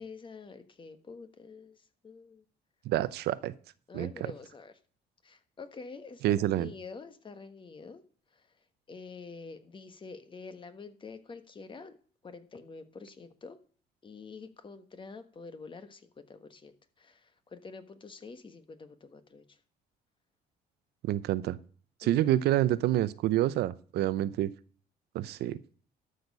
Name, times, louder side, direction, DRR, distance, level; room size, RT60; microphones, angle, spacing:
voice 1, 0.0-2.4 3.9-4.7 5.2-8.0 8.3-8.5 8.9-12.0 12.2-13.6 14.0-19.6 22.0-22.3, left 4 dB, 30° left, 10 dB, 1.4 m, -47 dB
voice 2, 2.8-3.5 3.9-4.3 6.2-6.7 21.0-21.6 22.0-24.5 25.1-25.6, right 13 dB, 75° right, 16 dB, 0.7 m, -28 dB
12.0 x 6.5 x 5.4 m, 0.44 s
cardioid pair, 110°, 17 cm